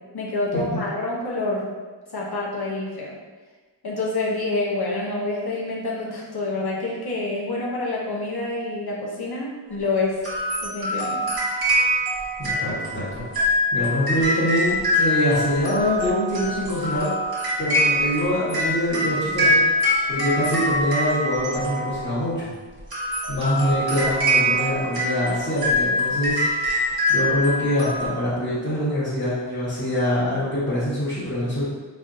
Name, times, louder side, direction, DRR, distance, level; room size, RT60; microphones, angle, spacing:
voice 1, 0.1-1.7 2.1-3.2 3.8-10.2 10.6-11.2, left 2 dB, 60° left, -4 dB, 0.9 m, -27 dB
sound 1, 10.2-22.2 22.8-28.1, equal, 55° right, 1.3 m, -24 dB
voice 2, 12.4-17.1 17.6-19.6 20.1-22.5 23.3-26.8 27.1-31.6, left 1 dB, 25° left, -12 dB, 1.4 m, -24 dB
3.7 x 3.4 x 2.6 m, 1.3 s
wide cardioid pair, 55°, 44 cm